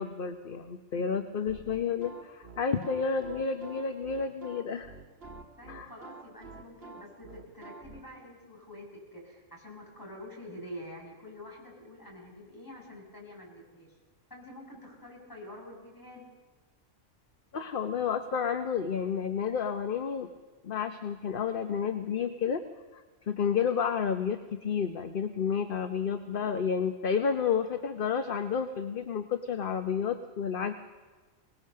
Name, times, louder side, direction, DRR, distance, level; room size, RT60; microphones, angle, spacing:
voice 1, 0.0-4.9 5.7-5.9 17.5-20.3 20.6-22.6 22.9-30.7, left 6 dB, 50° left, 8 dB, 1.0 m, -31 dB
sound 1, 1.4-8.0, right 3 dB, 55° right, 2.0 m, -48 dB
voice 2, 5.6-13.9 14.3-16.3, left 1 dB, 15° left, -2 dB, 6.4 m, -47 dB
24.5 x 19.5 x 6.6 m, 1.4 s
omnidirectional pair, 1.3 m